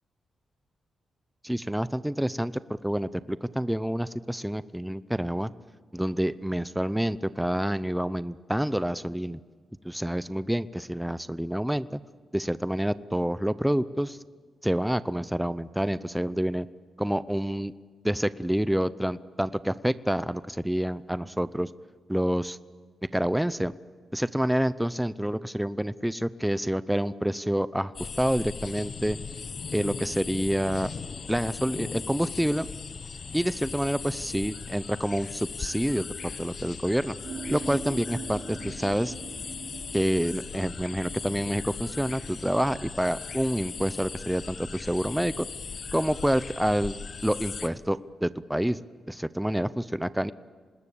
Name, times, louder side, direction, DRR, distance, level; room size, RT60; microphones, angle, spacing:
voice 1, 1.4-5.5 5.9-9.4 9.8-12.0 12.3-14.2 14.6-16.7 17.0-17.7 18.0-21.7 22.1-22.6 23.1-23.7 24.1-29.2 29.7-30.9 31.3-32.7 33.3-37.1 37.5-39.1 39.9-45.5 45.9-47.0 47.2-48.8 49.1-50.3, equal, 5° right, 15 dB, 0.7 m, -28 dB
sound 1, 27.9-47.7, left 5 dB, 55° left, 0.9 m, -38 dB
sound 2, 37.2-44.7, right 5 dB, 70° right, 3.7 m, -44 dB
26.0 x 20.0 x 8.6 m, 1.6 s
cardioid pair, 80°, 0 cm